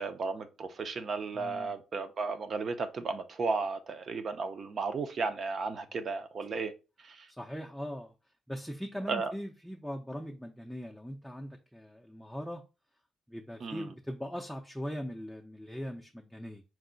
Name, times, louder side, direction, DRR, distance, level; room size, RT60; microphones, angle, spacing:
voice 1, 0.0-6.7 7.0-7.3 9.1-9.3 13.6-13.9, right 4 dB, 50° right, 0.5 m, -34 dB
voice 2, 1.3-1.8 7.3-8.1 8.5-12.6 13.3-16.6, equal, ahead, 0.5 m, -40 dB
4.5 x 2.1 x 3.8 m
cardioid pair, 90°, 0 cm